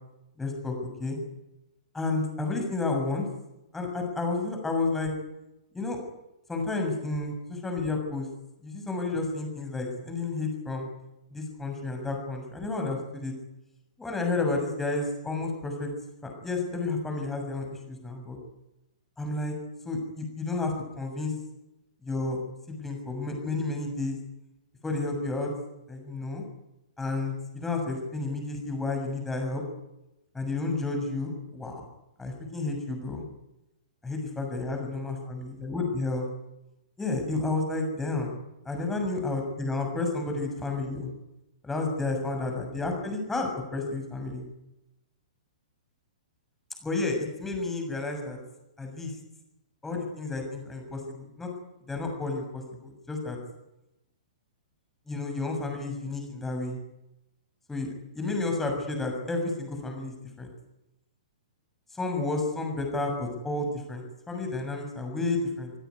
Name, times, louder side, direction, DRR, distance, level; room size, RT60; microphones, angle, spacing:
voice 1, 0.4-1.2 1.9-3.3 3.7-5.1 5.7-6.0 6.5-8.3 8.6-10.9 11.3-13.3 14.0-15.9 16.2-18.4 19.2-19.5 19.8-21.3 22.0-22.4 22.7-24.2 24.8-25.5 25.9-26.4 27.0-29.6 30.3-31.8 32.2-33.2 34.0-36.3 37.0-38.4 38.6-41.1 41.6-44.4 46.8-48.4 48.8-49.1 49.8-51.5 51.9-53.4 55.1-56.8 57.7-60.5 61.9-65.7, left 3 dB, 5° left, 3 dB, 6.7 m, -31 dB
27.5 x 17.0 x 9.6 m, 0.92 s
hypercardioid pair, 165°, 4 cm